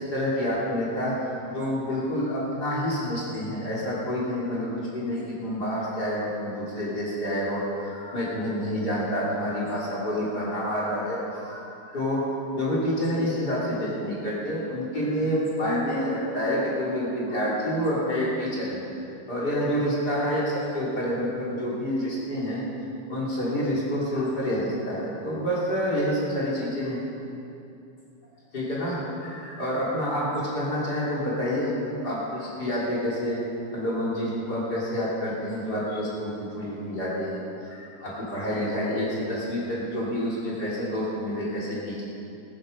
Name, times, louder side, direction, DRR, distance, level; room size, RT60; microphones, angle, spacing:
voice 1, 0.0-12.2 12.5-19.0 19.3-22.6 23.1-27.0 28.5-30.2 30.5-31.7 32.0-33.4 33.7-37.4 37.7-42.0, equal, 25° left, -6 dB, 3.1 m, -28 dB
15.0 x 14.0 x 5.3 m, 2.7 s
omnidirectional pair, 5.8 m